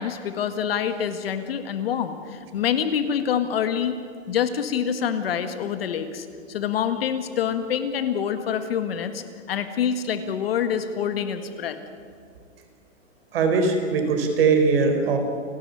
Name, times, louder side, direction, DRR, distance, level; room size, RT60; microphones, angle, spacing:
voice 1, 0.0-4.0 4.3-11.8, left 8 dB, 50° left, 9 dB, 1.8 m, -26 dB
voice 2, 13.3-15.2, right 4 dB, 50° right, 5 dB, 4.6 m, -20 dB
30.0 x 12.5 x 9.9 m, 2.2 s
hypercardioid pair, 170°, 38 cm